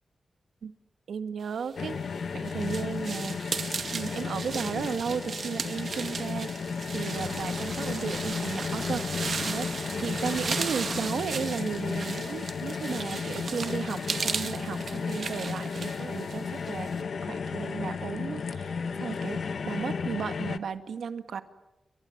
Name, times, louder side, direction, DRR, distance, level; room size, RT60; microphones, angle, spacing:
voice 1, 1.1-2.0 2.3-3.5 3.9-6.5 6.9-9.0 9.4-16.9 17.2-21.4, right 6 dB, 85° right, 9 dB, 1.9 m, -34 dB
sound 1, 1.8-20.6, left 5 dB, 65° left, 1.2 m, -34 dB
sound 2, 1.8-17.0, right 5 dB, 55° right, 2.1 m, -36 dB
sound 3, 5.0-20.1, left 2 dB, 25° left, 1.3 m, -46 dB
29.5 x 24.5 x 7.3 m, 0.94 s
wide cardioid pair, 120°, 0 cm